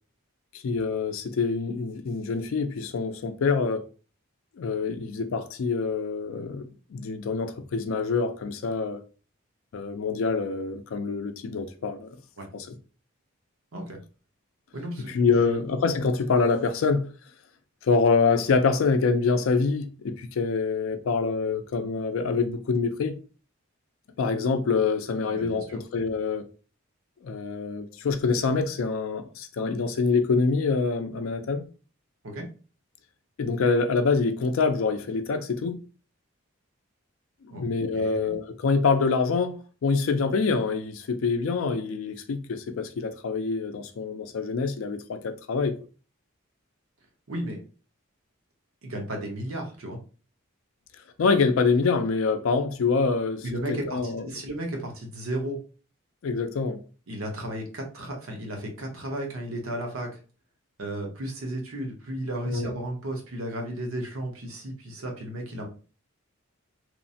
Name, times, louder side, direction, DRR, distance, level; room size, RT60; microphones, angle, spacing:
voice 1, 0.5-3.9 4.6-9.0 9.7-12.2 12.5-12.7 15.1-17.1 17.8-23.2 24.2-26.4 27.2-31.6 33.4-35.8 37.5-45.8 51.2-54.2 56.2-56.8 62.5-62.7, left 4 dB, 70° left, 0.4 m, -25 dB
voice 2, 14.7-15.6 25.3-25.8 32.2-32.5 37.5-37.6 37.9-38.3 47.3-47.6 48.8-50.0 53.4-55.6 57.1-60.2 60.8-65.7, right 1 dB, 80° right, 0.9 m, -34 dB
3.0 x 2.1 x 2.6 m
head